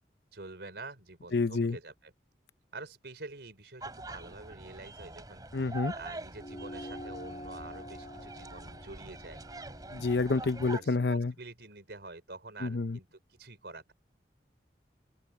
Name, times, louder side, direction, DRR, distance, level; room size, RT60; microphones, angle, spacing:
voice 1, 0.3-2.1 2.7-9.4 10.6-13.9, right 3 dB, 75° right, 3.6 m, -47 dB
voice 2, 1.3-1.8 5.5-5.9 9.9-11.3 12.6-13.0, left 3 dB, 75° left, 0.7 m, -28 dB
sound 1, 3.8-10.8, right 2 dB, 20° right, 2.9 m, -44 dB
sound 2, 6.4-11.2, left 1 dB, 35° left, 5.6 m, -47 dB
open air
head